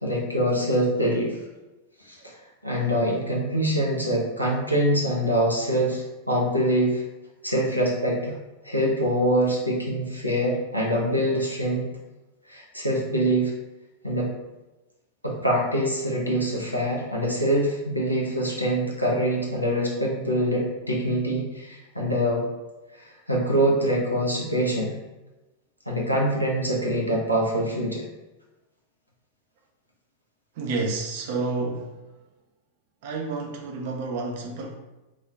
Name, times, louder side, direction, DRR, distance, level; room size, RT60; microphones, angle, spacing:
voice 1, 0.0-1.4 2.0-2.3 2.6-7.0 7.4-8.4 8.6-11.9 12.5-13.5 14.0-14.3 15.2-22.5 23.0-24.9 25.9-28.1, equal, 90° left, -3 dB, 0.6 m, -24 dB
voice 2, 30.6-31.9 33.0-34.7, right 3 dB, 50° right, 2 dB, 0.4 m, -29 dB
2.4 x 2.1 x 3.3 m, 1.1 s
figure-of-eight pair, 90°, 0 cm